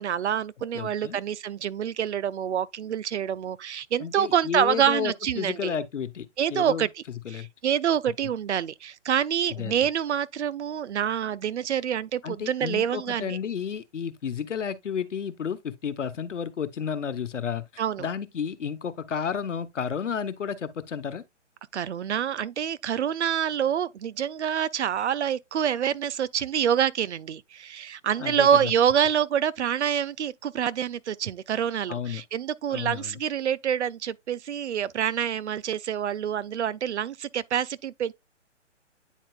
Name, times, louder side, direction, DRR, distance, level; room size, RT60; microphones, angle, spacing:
voice 1, 0.0-5.7 6.4-6.9 7.3-13.4 17.8-18.1 21.7-38.1, right 9 dB, 70° right, 0.5 m, -26 dB
voice 2, 0.7-1.2 4.0-6.9 7.2-7.5 9.5-9.7 12.2-21.2 28.2-28.5 31.9-32.2 32.7-33.2, left 7 dB, 75° left, 1.0 m, -32 dB
9.2 x 4.4 x 2.3 m
hypercardioid pair, 145°, 36 cm